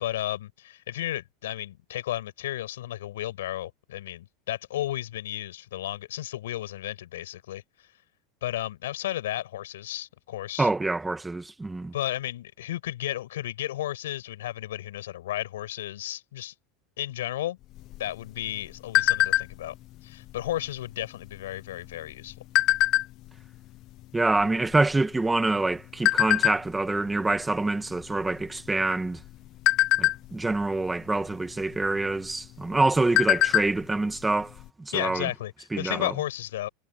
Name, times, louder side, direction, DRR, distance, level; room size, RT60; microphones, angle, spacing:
voice 1, 0.0-7.6 8.4-10.7 11.9-16.5 17.0-17.6 18.0-19.7 20.0-22.3 34.9-36.7, left 13 dB, 90° left, 5.6 m, -33 dB
voice 2, 10.6-11.9 24.1-29.2 30.0-35.3 35.7-36.1, right 2 dB, 10° right, 1.9 m, -26 dB
sound 1, 17.8-19.8 20.2-20.5 20.8-21.2 21.9-23.4 24.0-24.1 24.3-25.6 26.1-26.6 27.1-27.3 27.6-27.8 28.3-28.8 29.3-30.7 31.7-31.9 32.3-32.4 32.8-33.8 34.1-34.2 34.6-34.7, left 16 dB, 50° left, 0.4 m, -23 dB
supercardioid pair, 125°, 0 cm